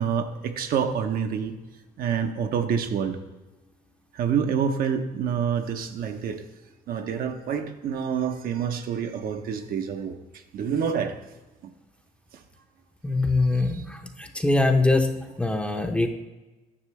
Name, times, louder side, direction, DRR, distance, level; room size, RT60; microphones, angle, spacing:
voice 1, 0.0-1.6 2.0-3.2 4.1-6.4 6.9-11.2 11.6-11.7 12.3-12.4 13.5-13.8, right 7 dB, 60° right, 6 dB, 0.7 m, -27 dB
voice 2, 13.0-16.1, left 2 dB, 5° left, 4 dB, 0.6 m, -23 dB
9.8 x 6.6 x 3.2 m, 1.1 s
cardioid pair, 110°, 17 cm